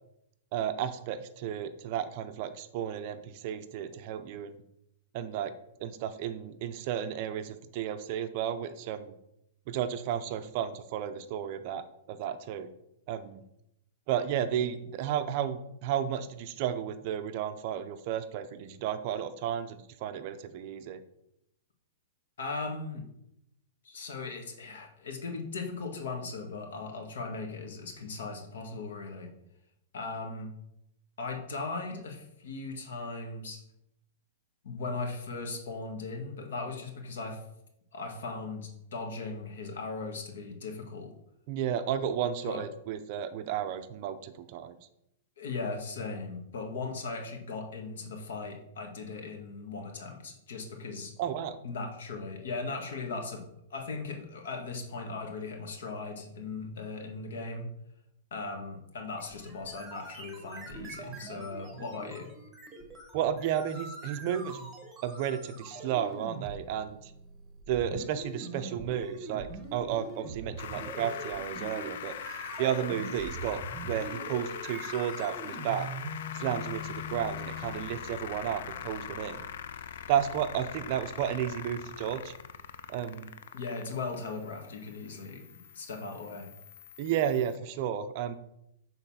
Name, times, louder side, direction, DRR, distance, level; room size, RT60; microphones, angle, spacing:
voice 1, 0.5-4.6 5.1-5.5 5.8-9.2 9.7-12.7 13.1-13.4 14.1-21.0 41.5-44.8 51.2-51.6 63.1-64.7 65.0-67.1 67.7-72.2 72.6-75.9 76.3-79.5 80.1-82.3 82.9-83.3 87.0-88.3, right 9 dB, 35° right, 10 dB, 0.4 m, -33 dB
voice 2, 22.4-23.0 23.8-29.3 29.9-30.5 31.2-33.6 34.6-37.4 37.9-41.1 42.4-42.6 45.4-51.1 51.6-53.4 53.7-57.7 58.3-62.3 83.5-85.4 85.7-86.5, left 3 dB, 75° left, 2 dB, 1.7 m, -38 dB
sound 1, 59.2-77.8, right 1 dB, 5° right, 0.9 m, -43 dB
sound 2, 70.6-87.6, left 8 dB, 55° left, 0.4 m, -42 dB
6.7 x 4.0 x 5.6 m, 0.81 s
supercardioid pair, 175°, 0 cm